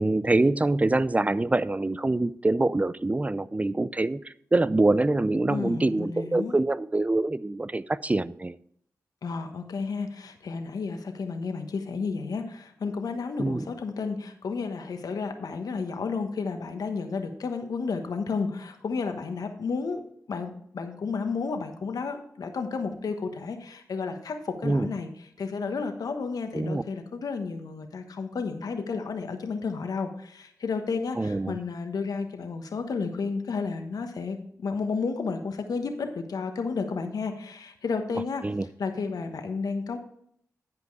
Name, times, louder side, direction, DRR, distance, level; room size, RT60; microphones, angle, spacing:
voice 1, 0.0-8.5 13.4-13.7 24.6-24.9 26.5-26.8 31.2-31.6 38.4-38.7, right 2 dB, 20° right, 18 dB, 0.4 m, -25 dB
voice 2, 5.5-6.6 9.2-20.0 20.3-25.1 25.4-38.4 38.8-40.0, left 4 dB, 80° left, 6 dB, 1.2 m, -32 dB
10.5 x 5.2 x 4.7 m, 0.69 s
cardioid pair, 45°, 6 cm